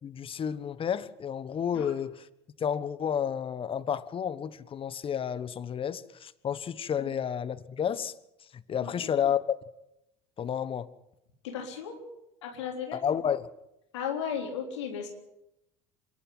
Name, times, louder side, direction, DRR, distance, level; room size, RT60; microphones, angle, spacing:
voice 1, 0.0-2.3 2.6-8.1 8.5-9.4 10.4-10.9 12.9-13.5, left 8 dB, 40° left, 16 dB, 1.4 m, -31 dB
voice 2, 11.4-12.0 12.4-13.0 13.9-15.1, left 7 dB, 85° left, 2 dB, 3.8 m, -35 dB
26.0 x 11.5 x 9.6 m, 0.87 s
hypercardioid pair, 75°, 14 cm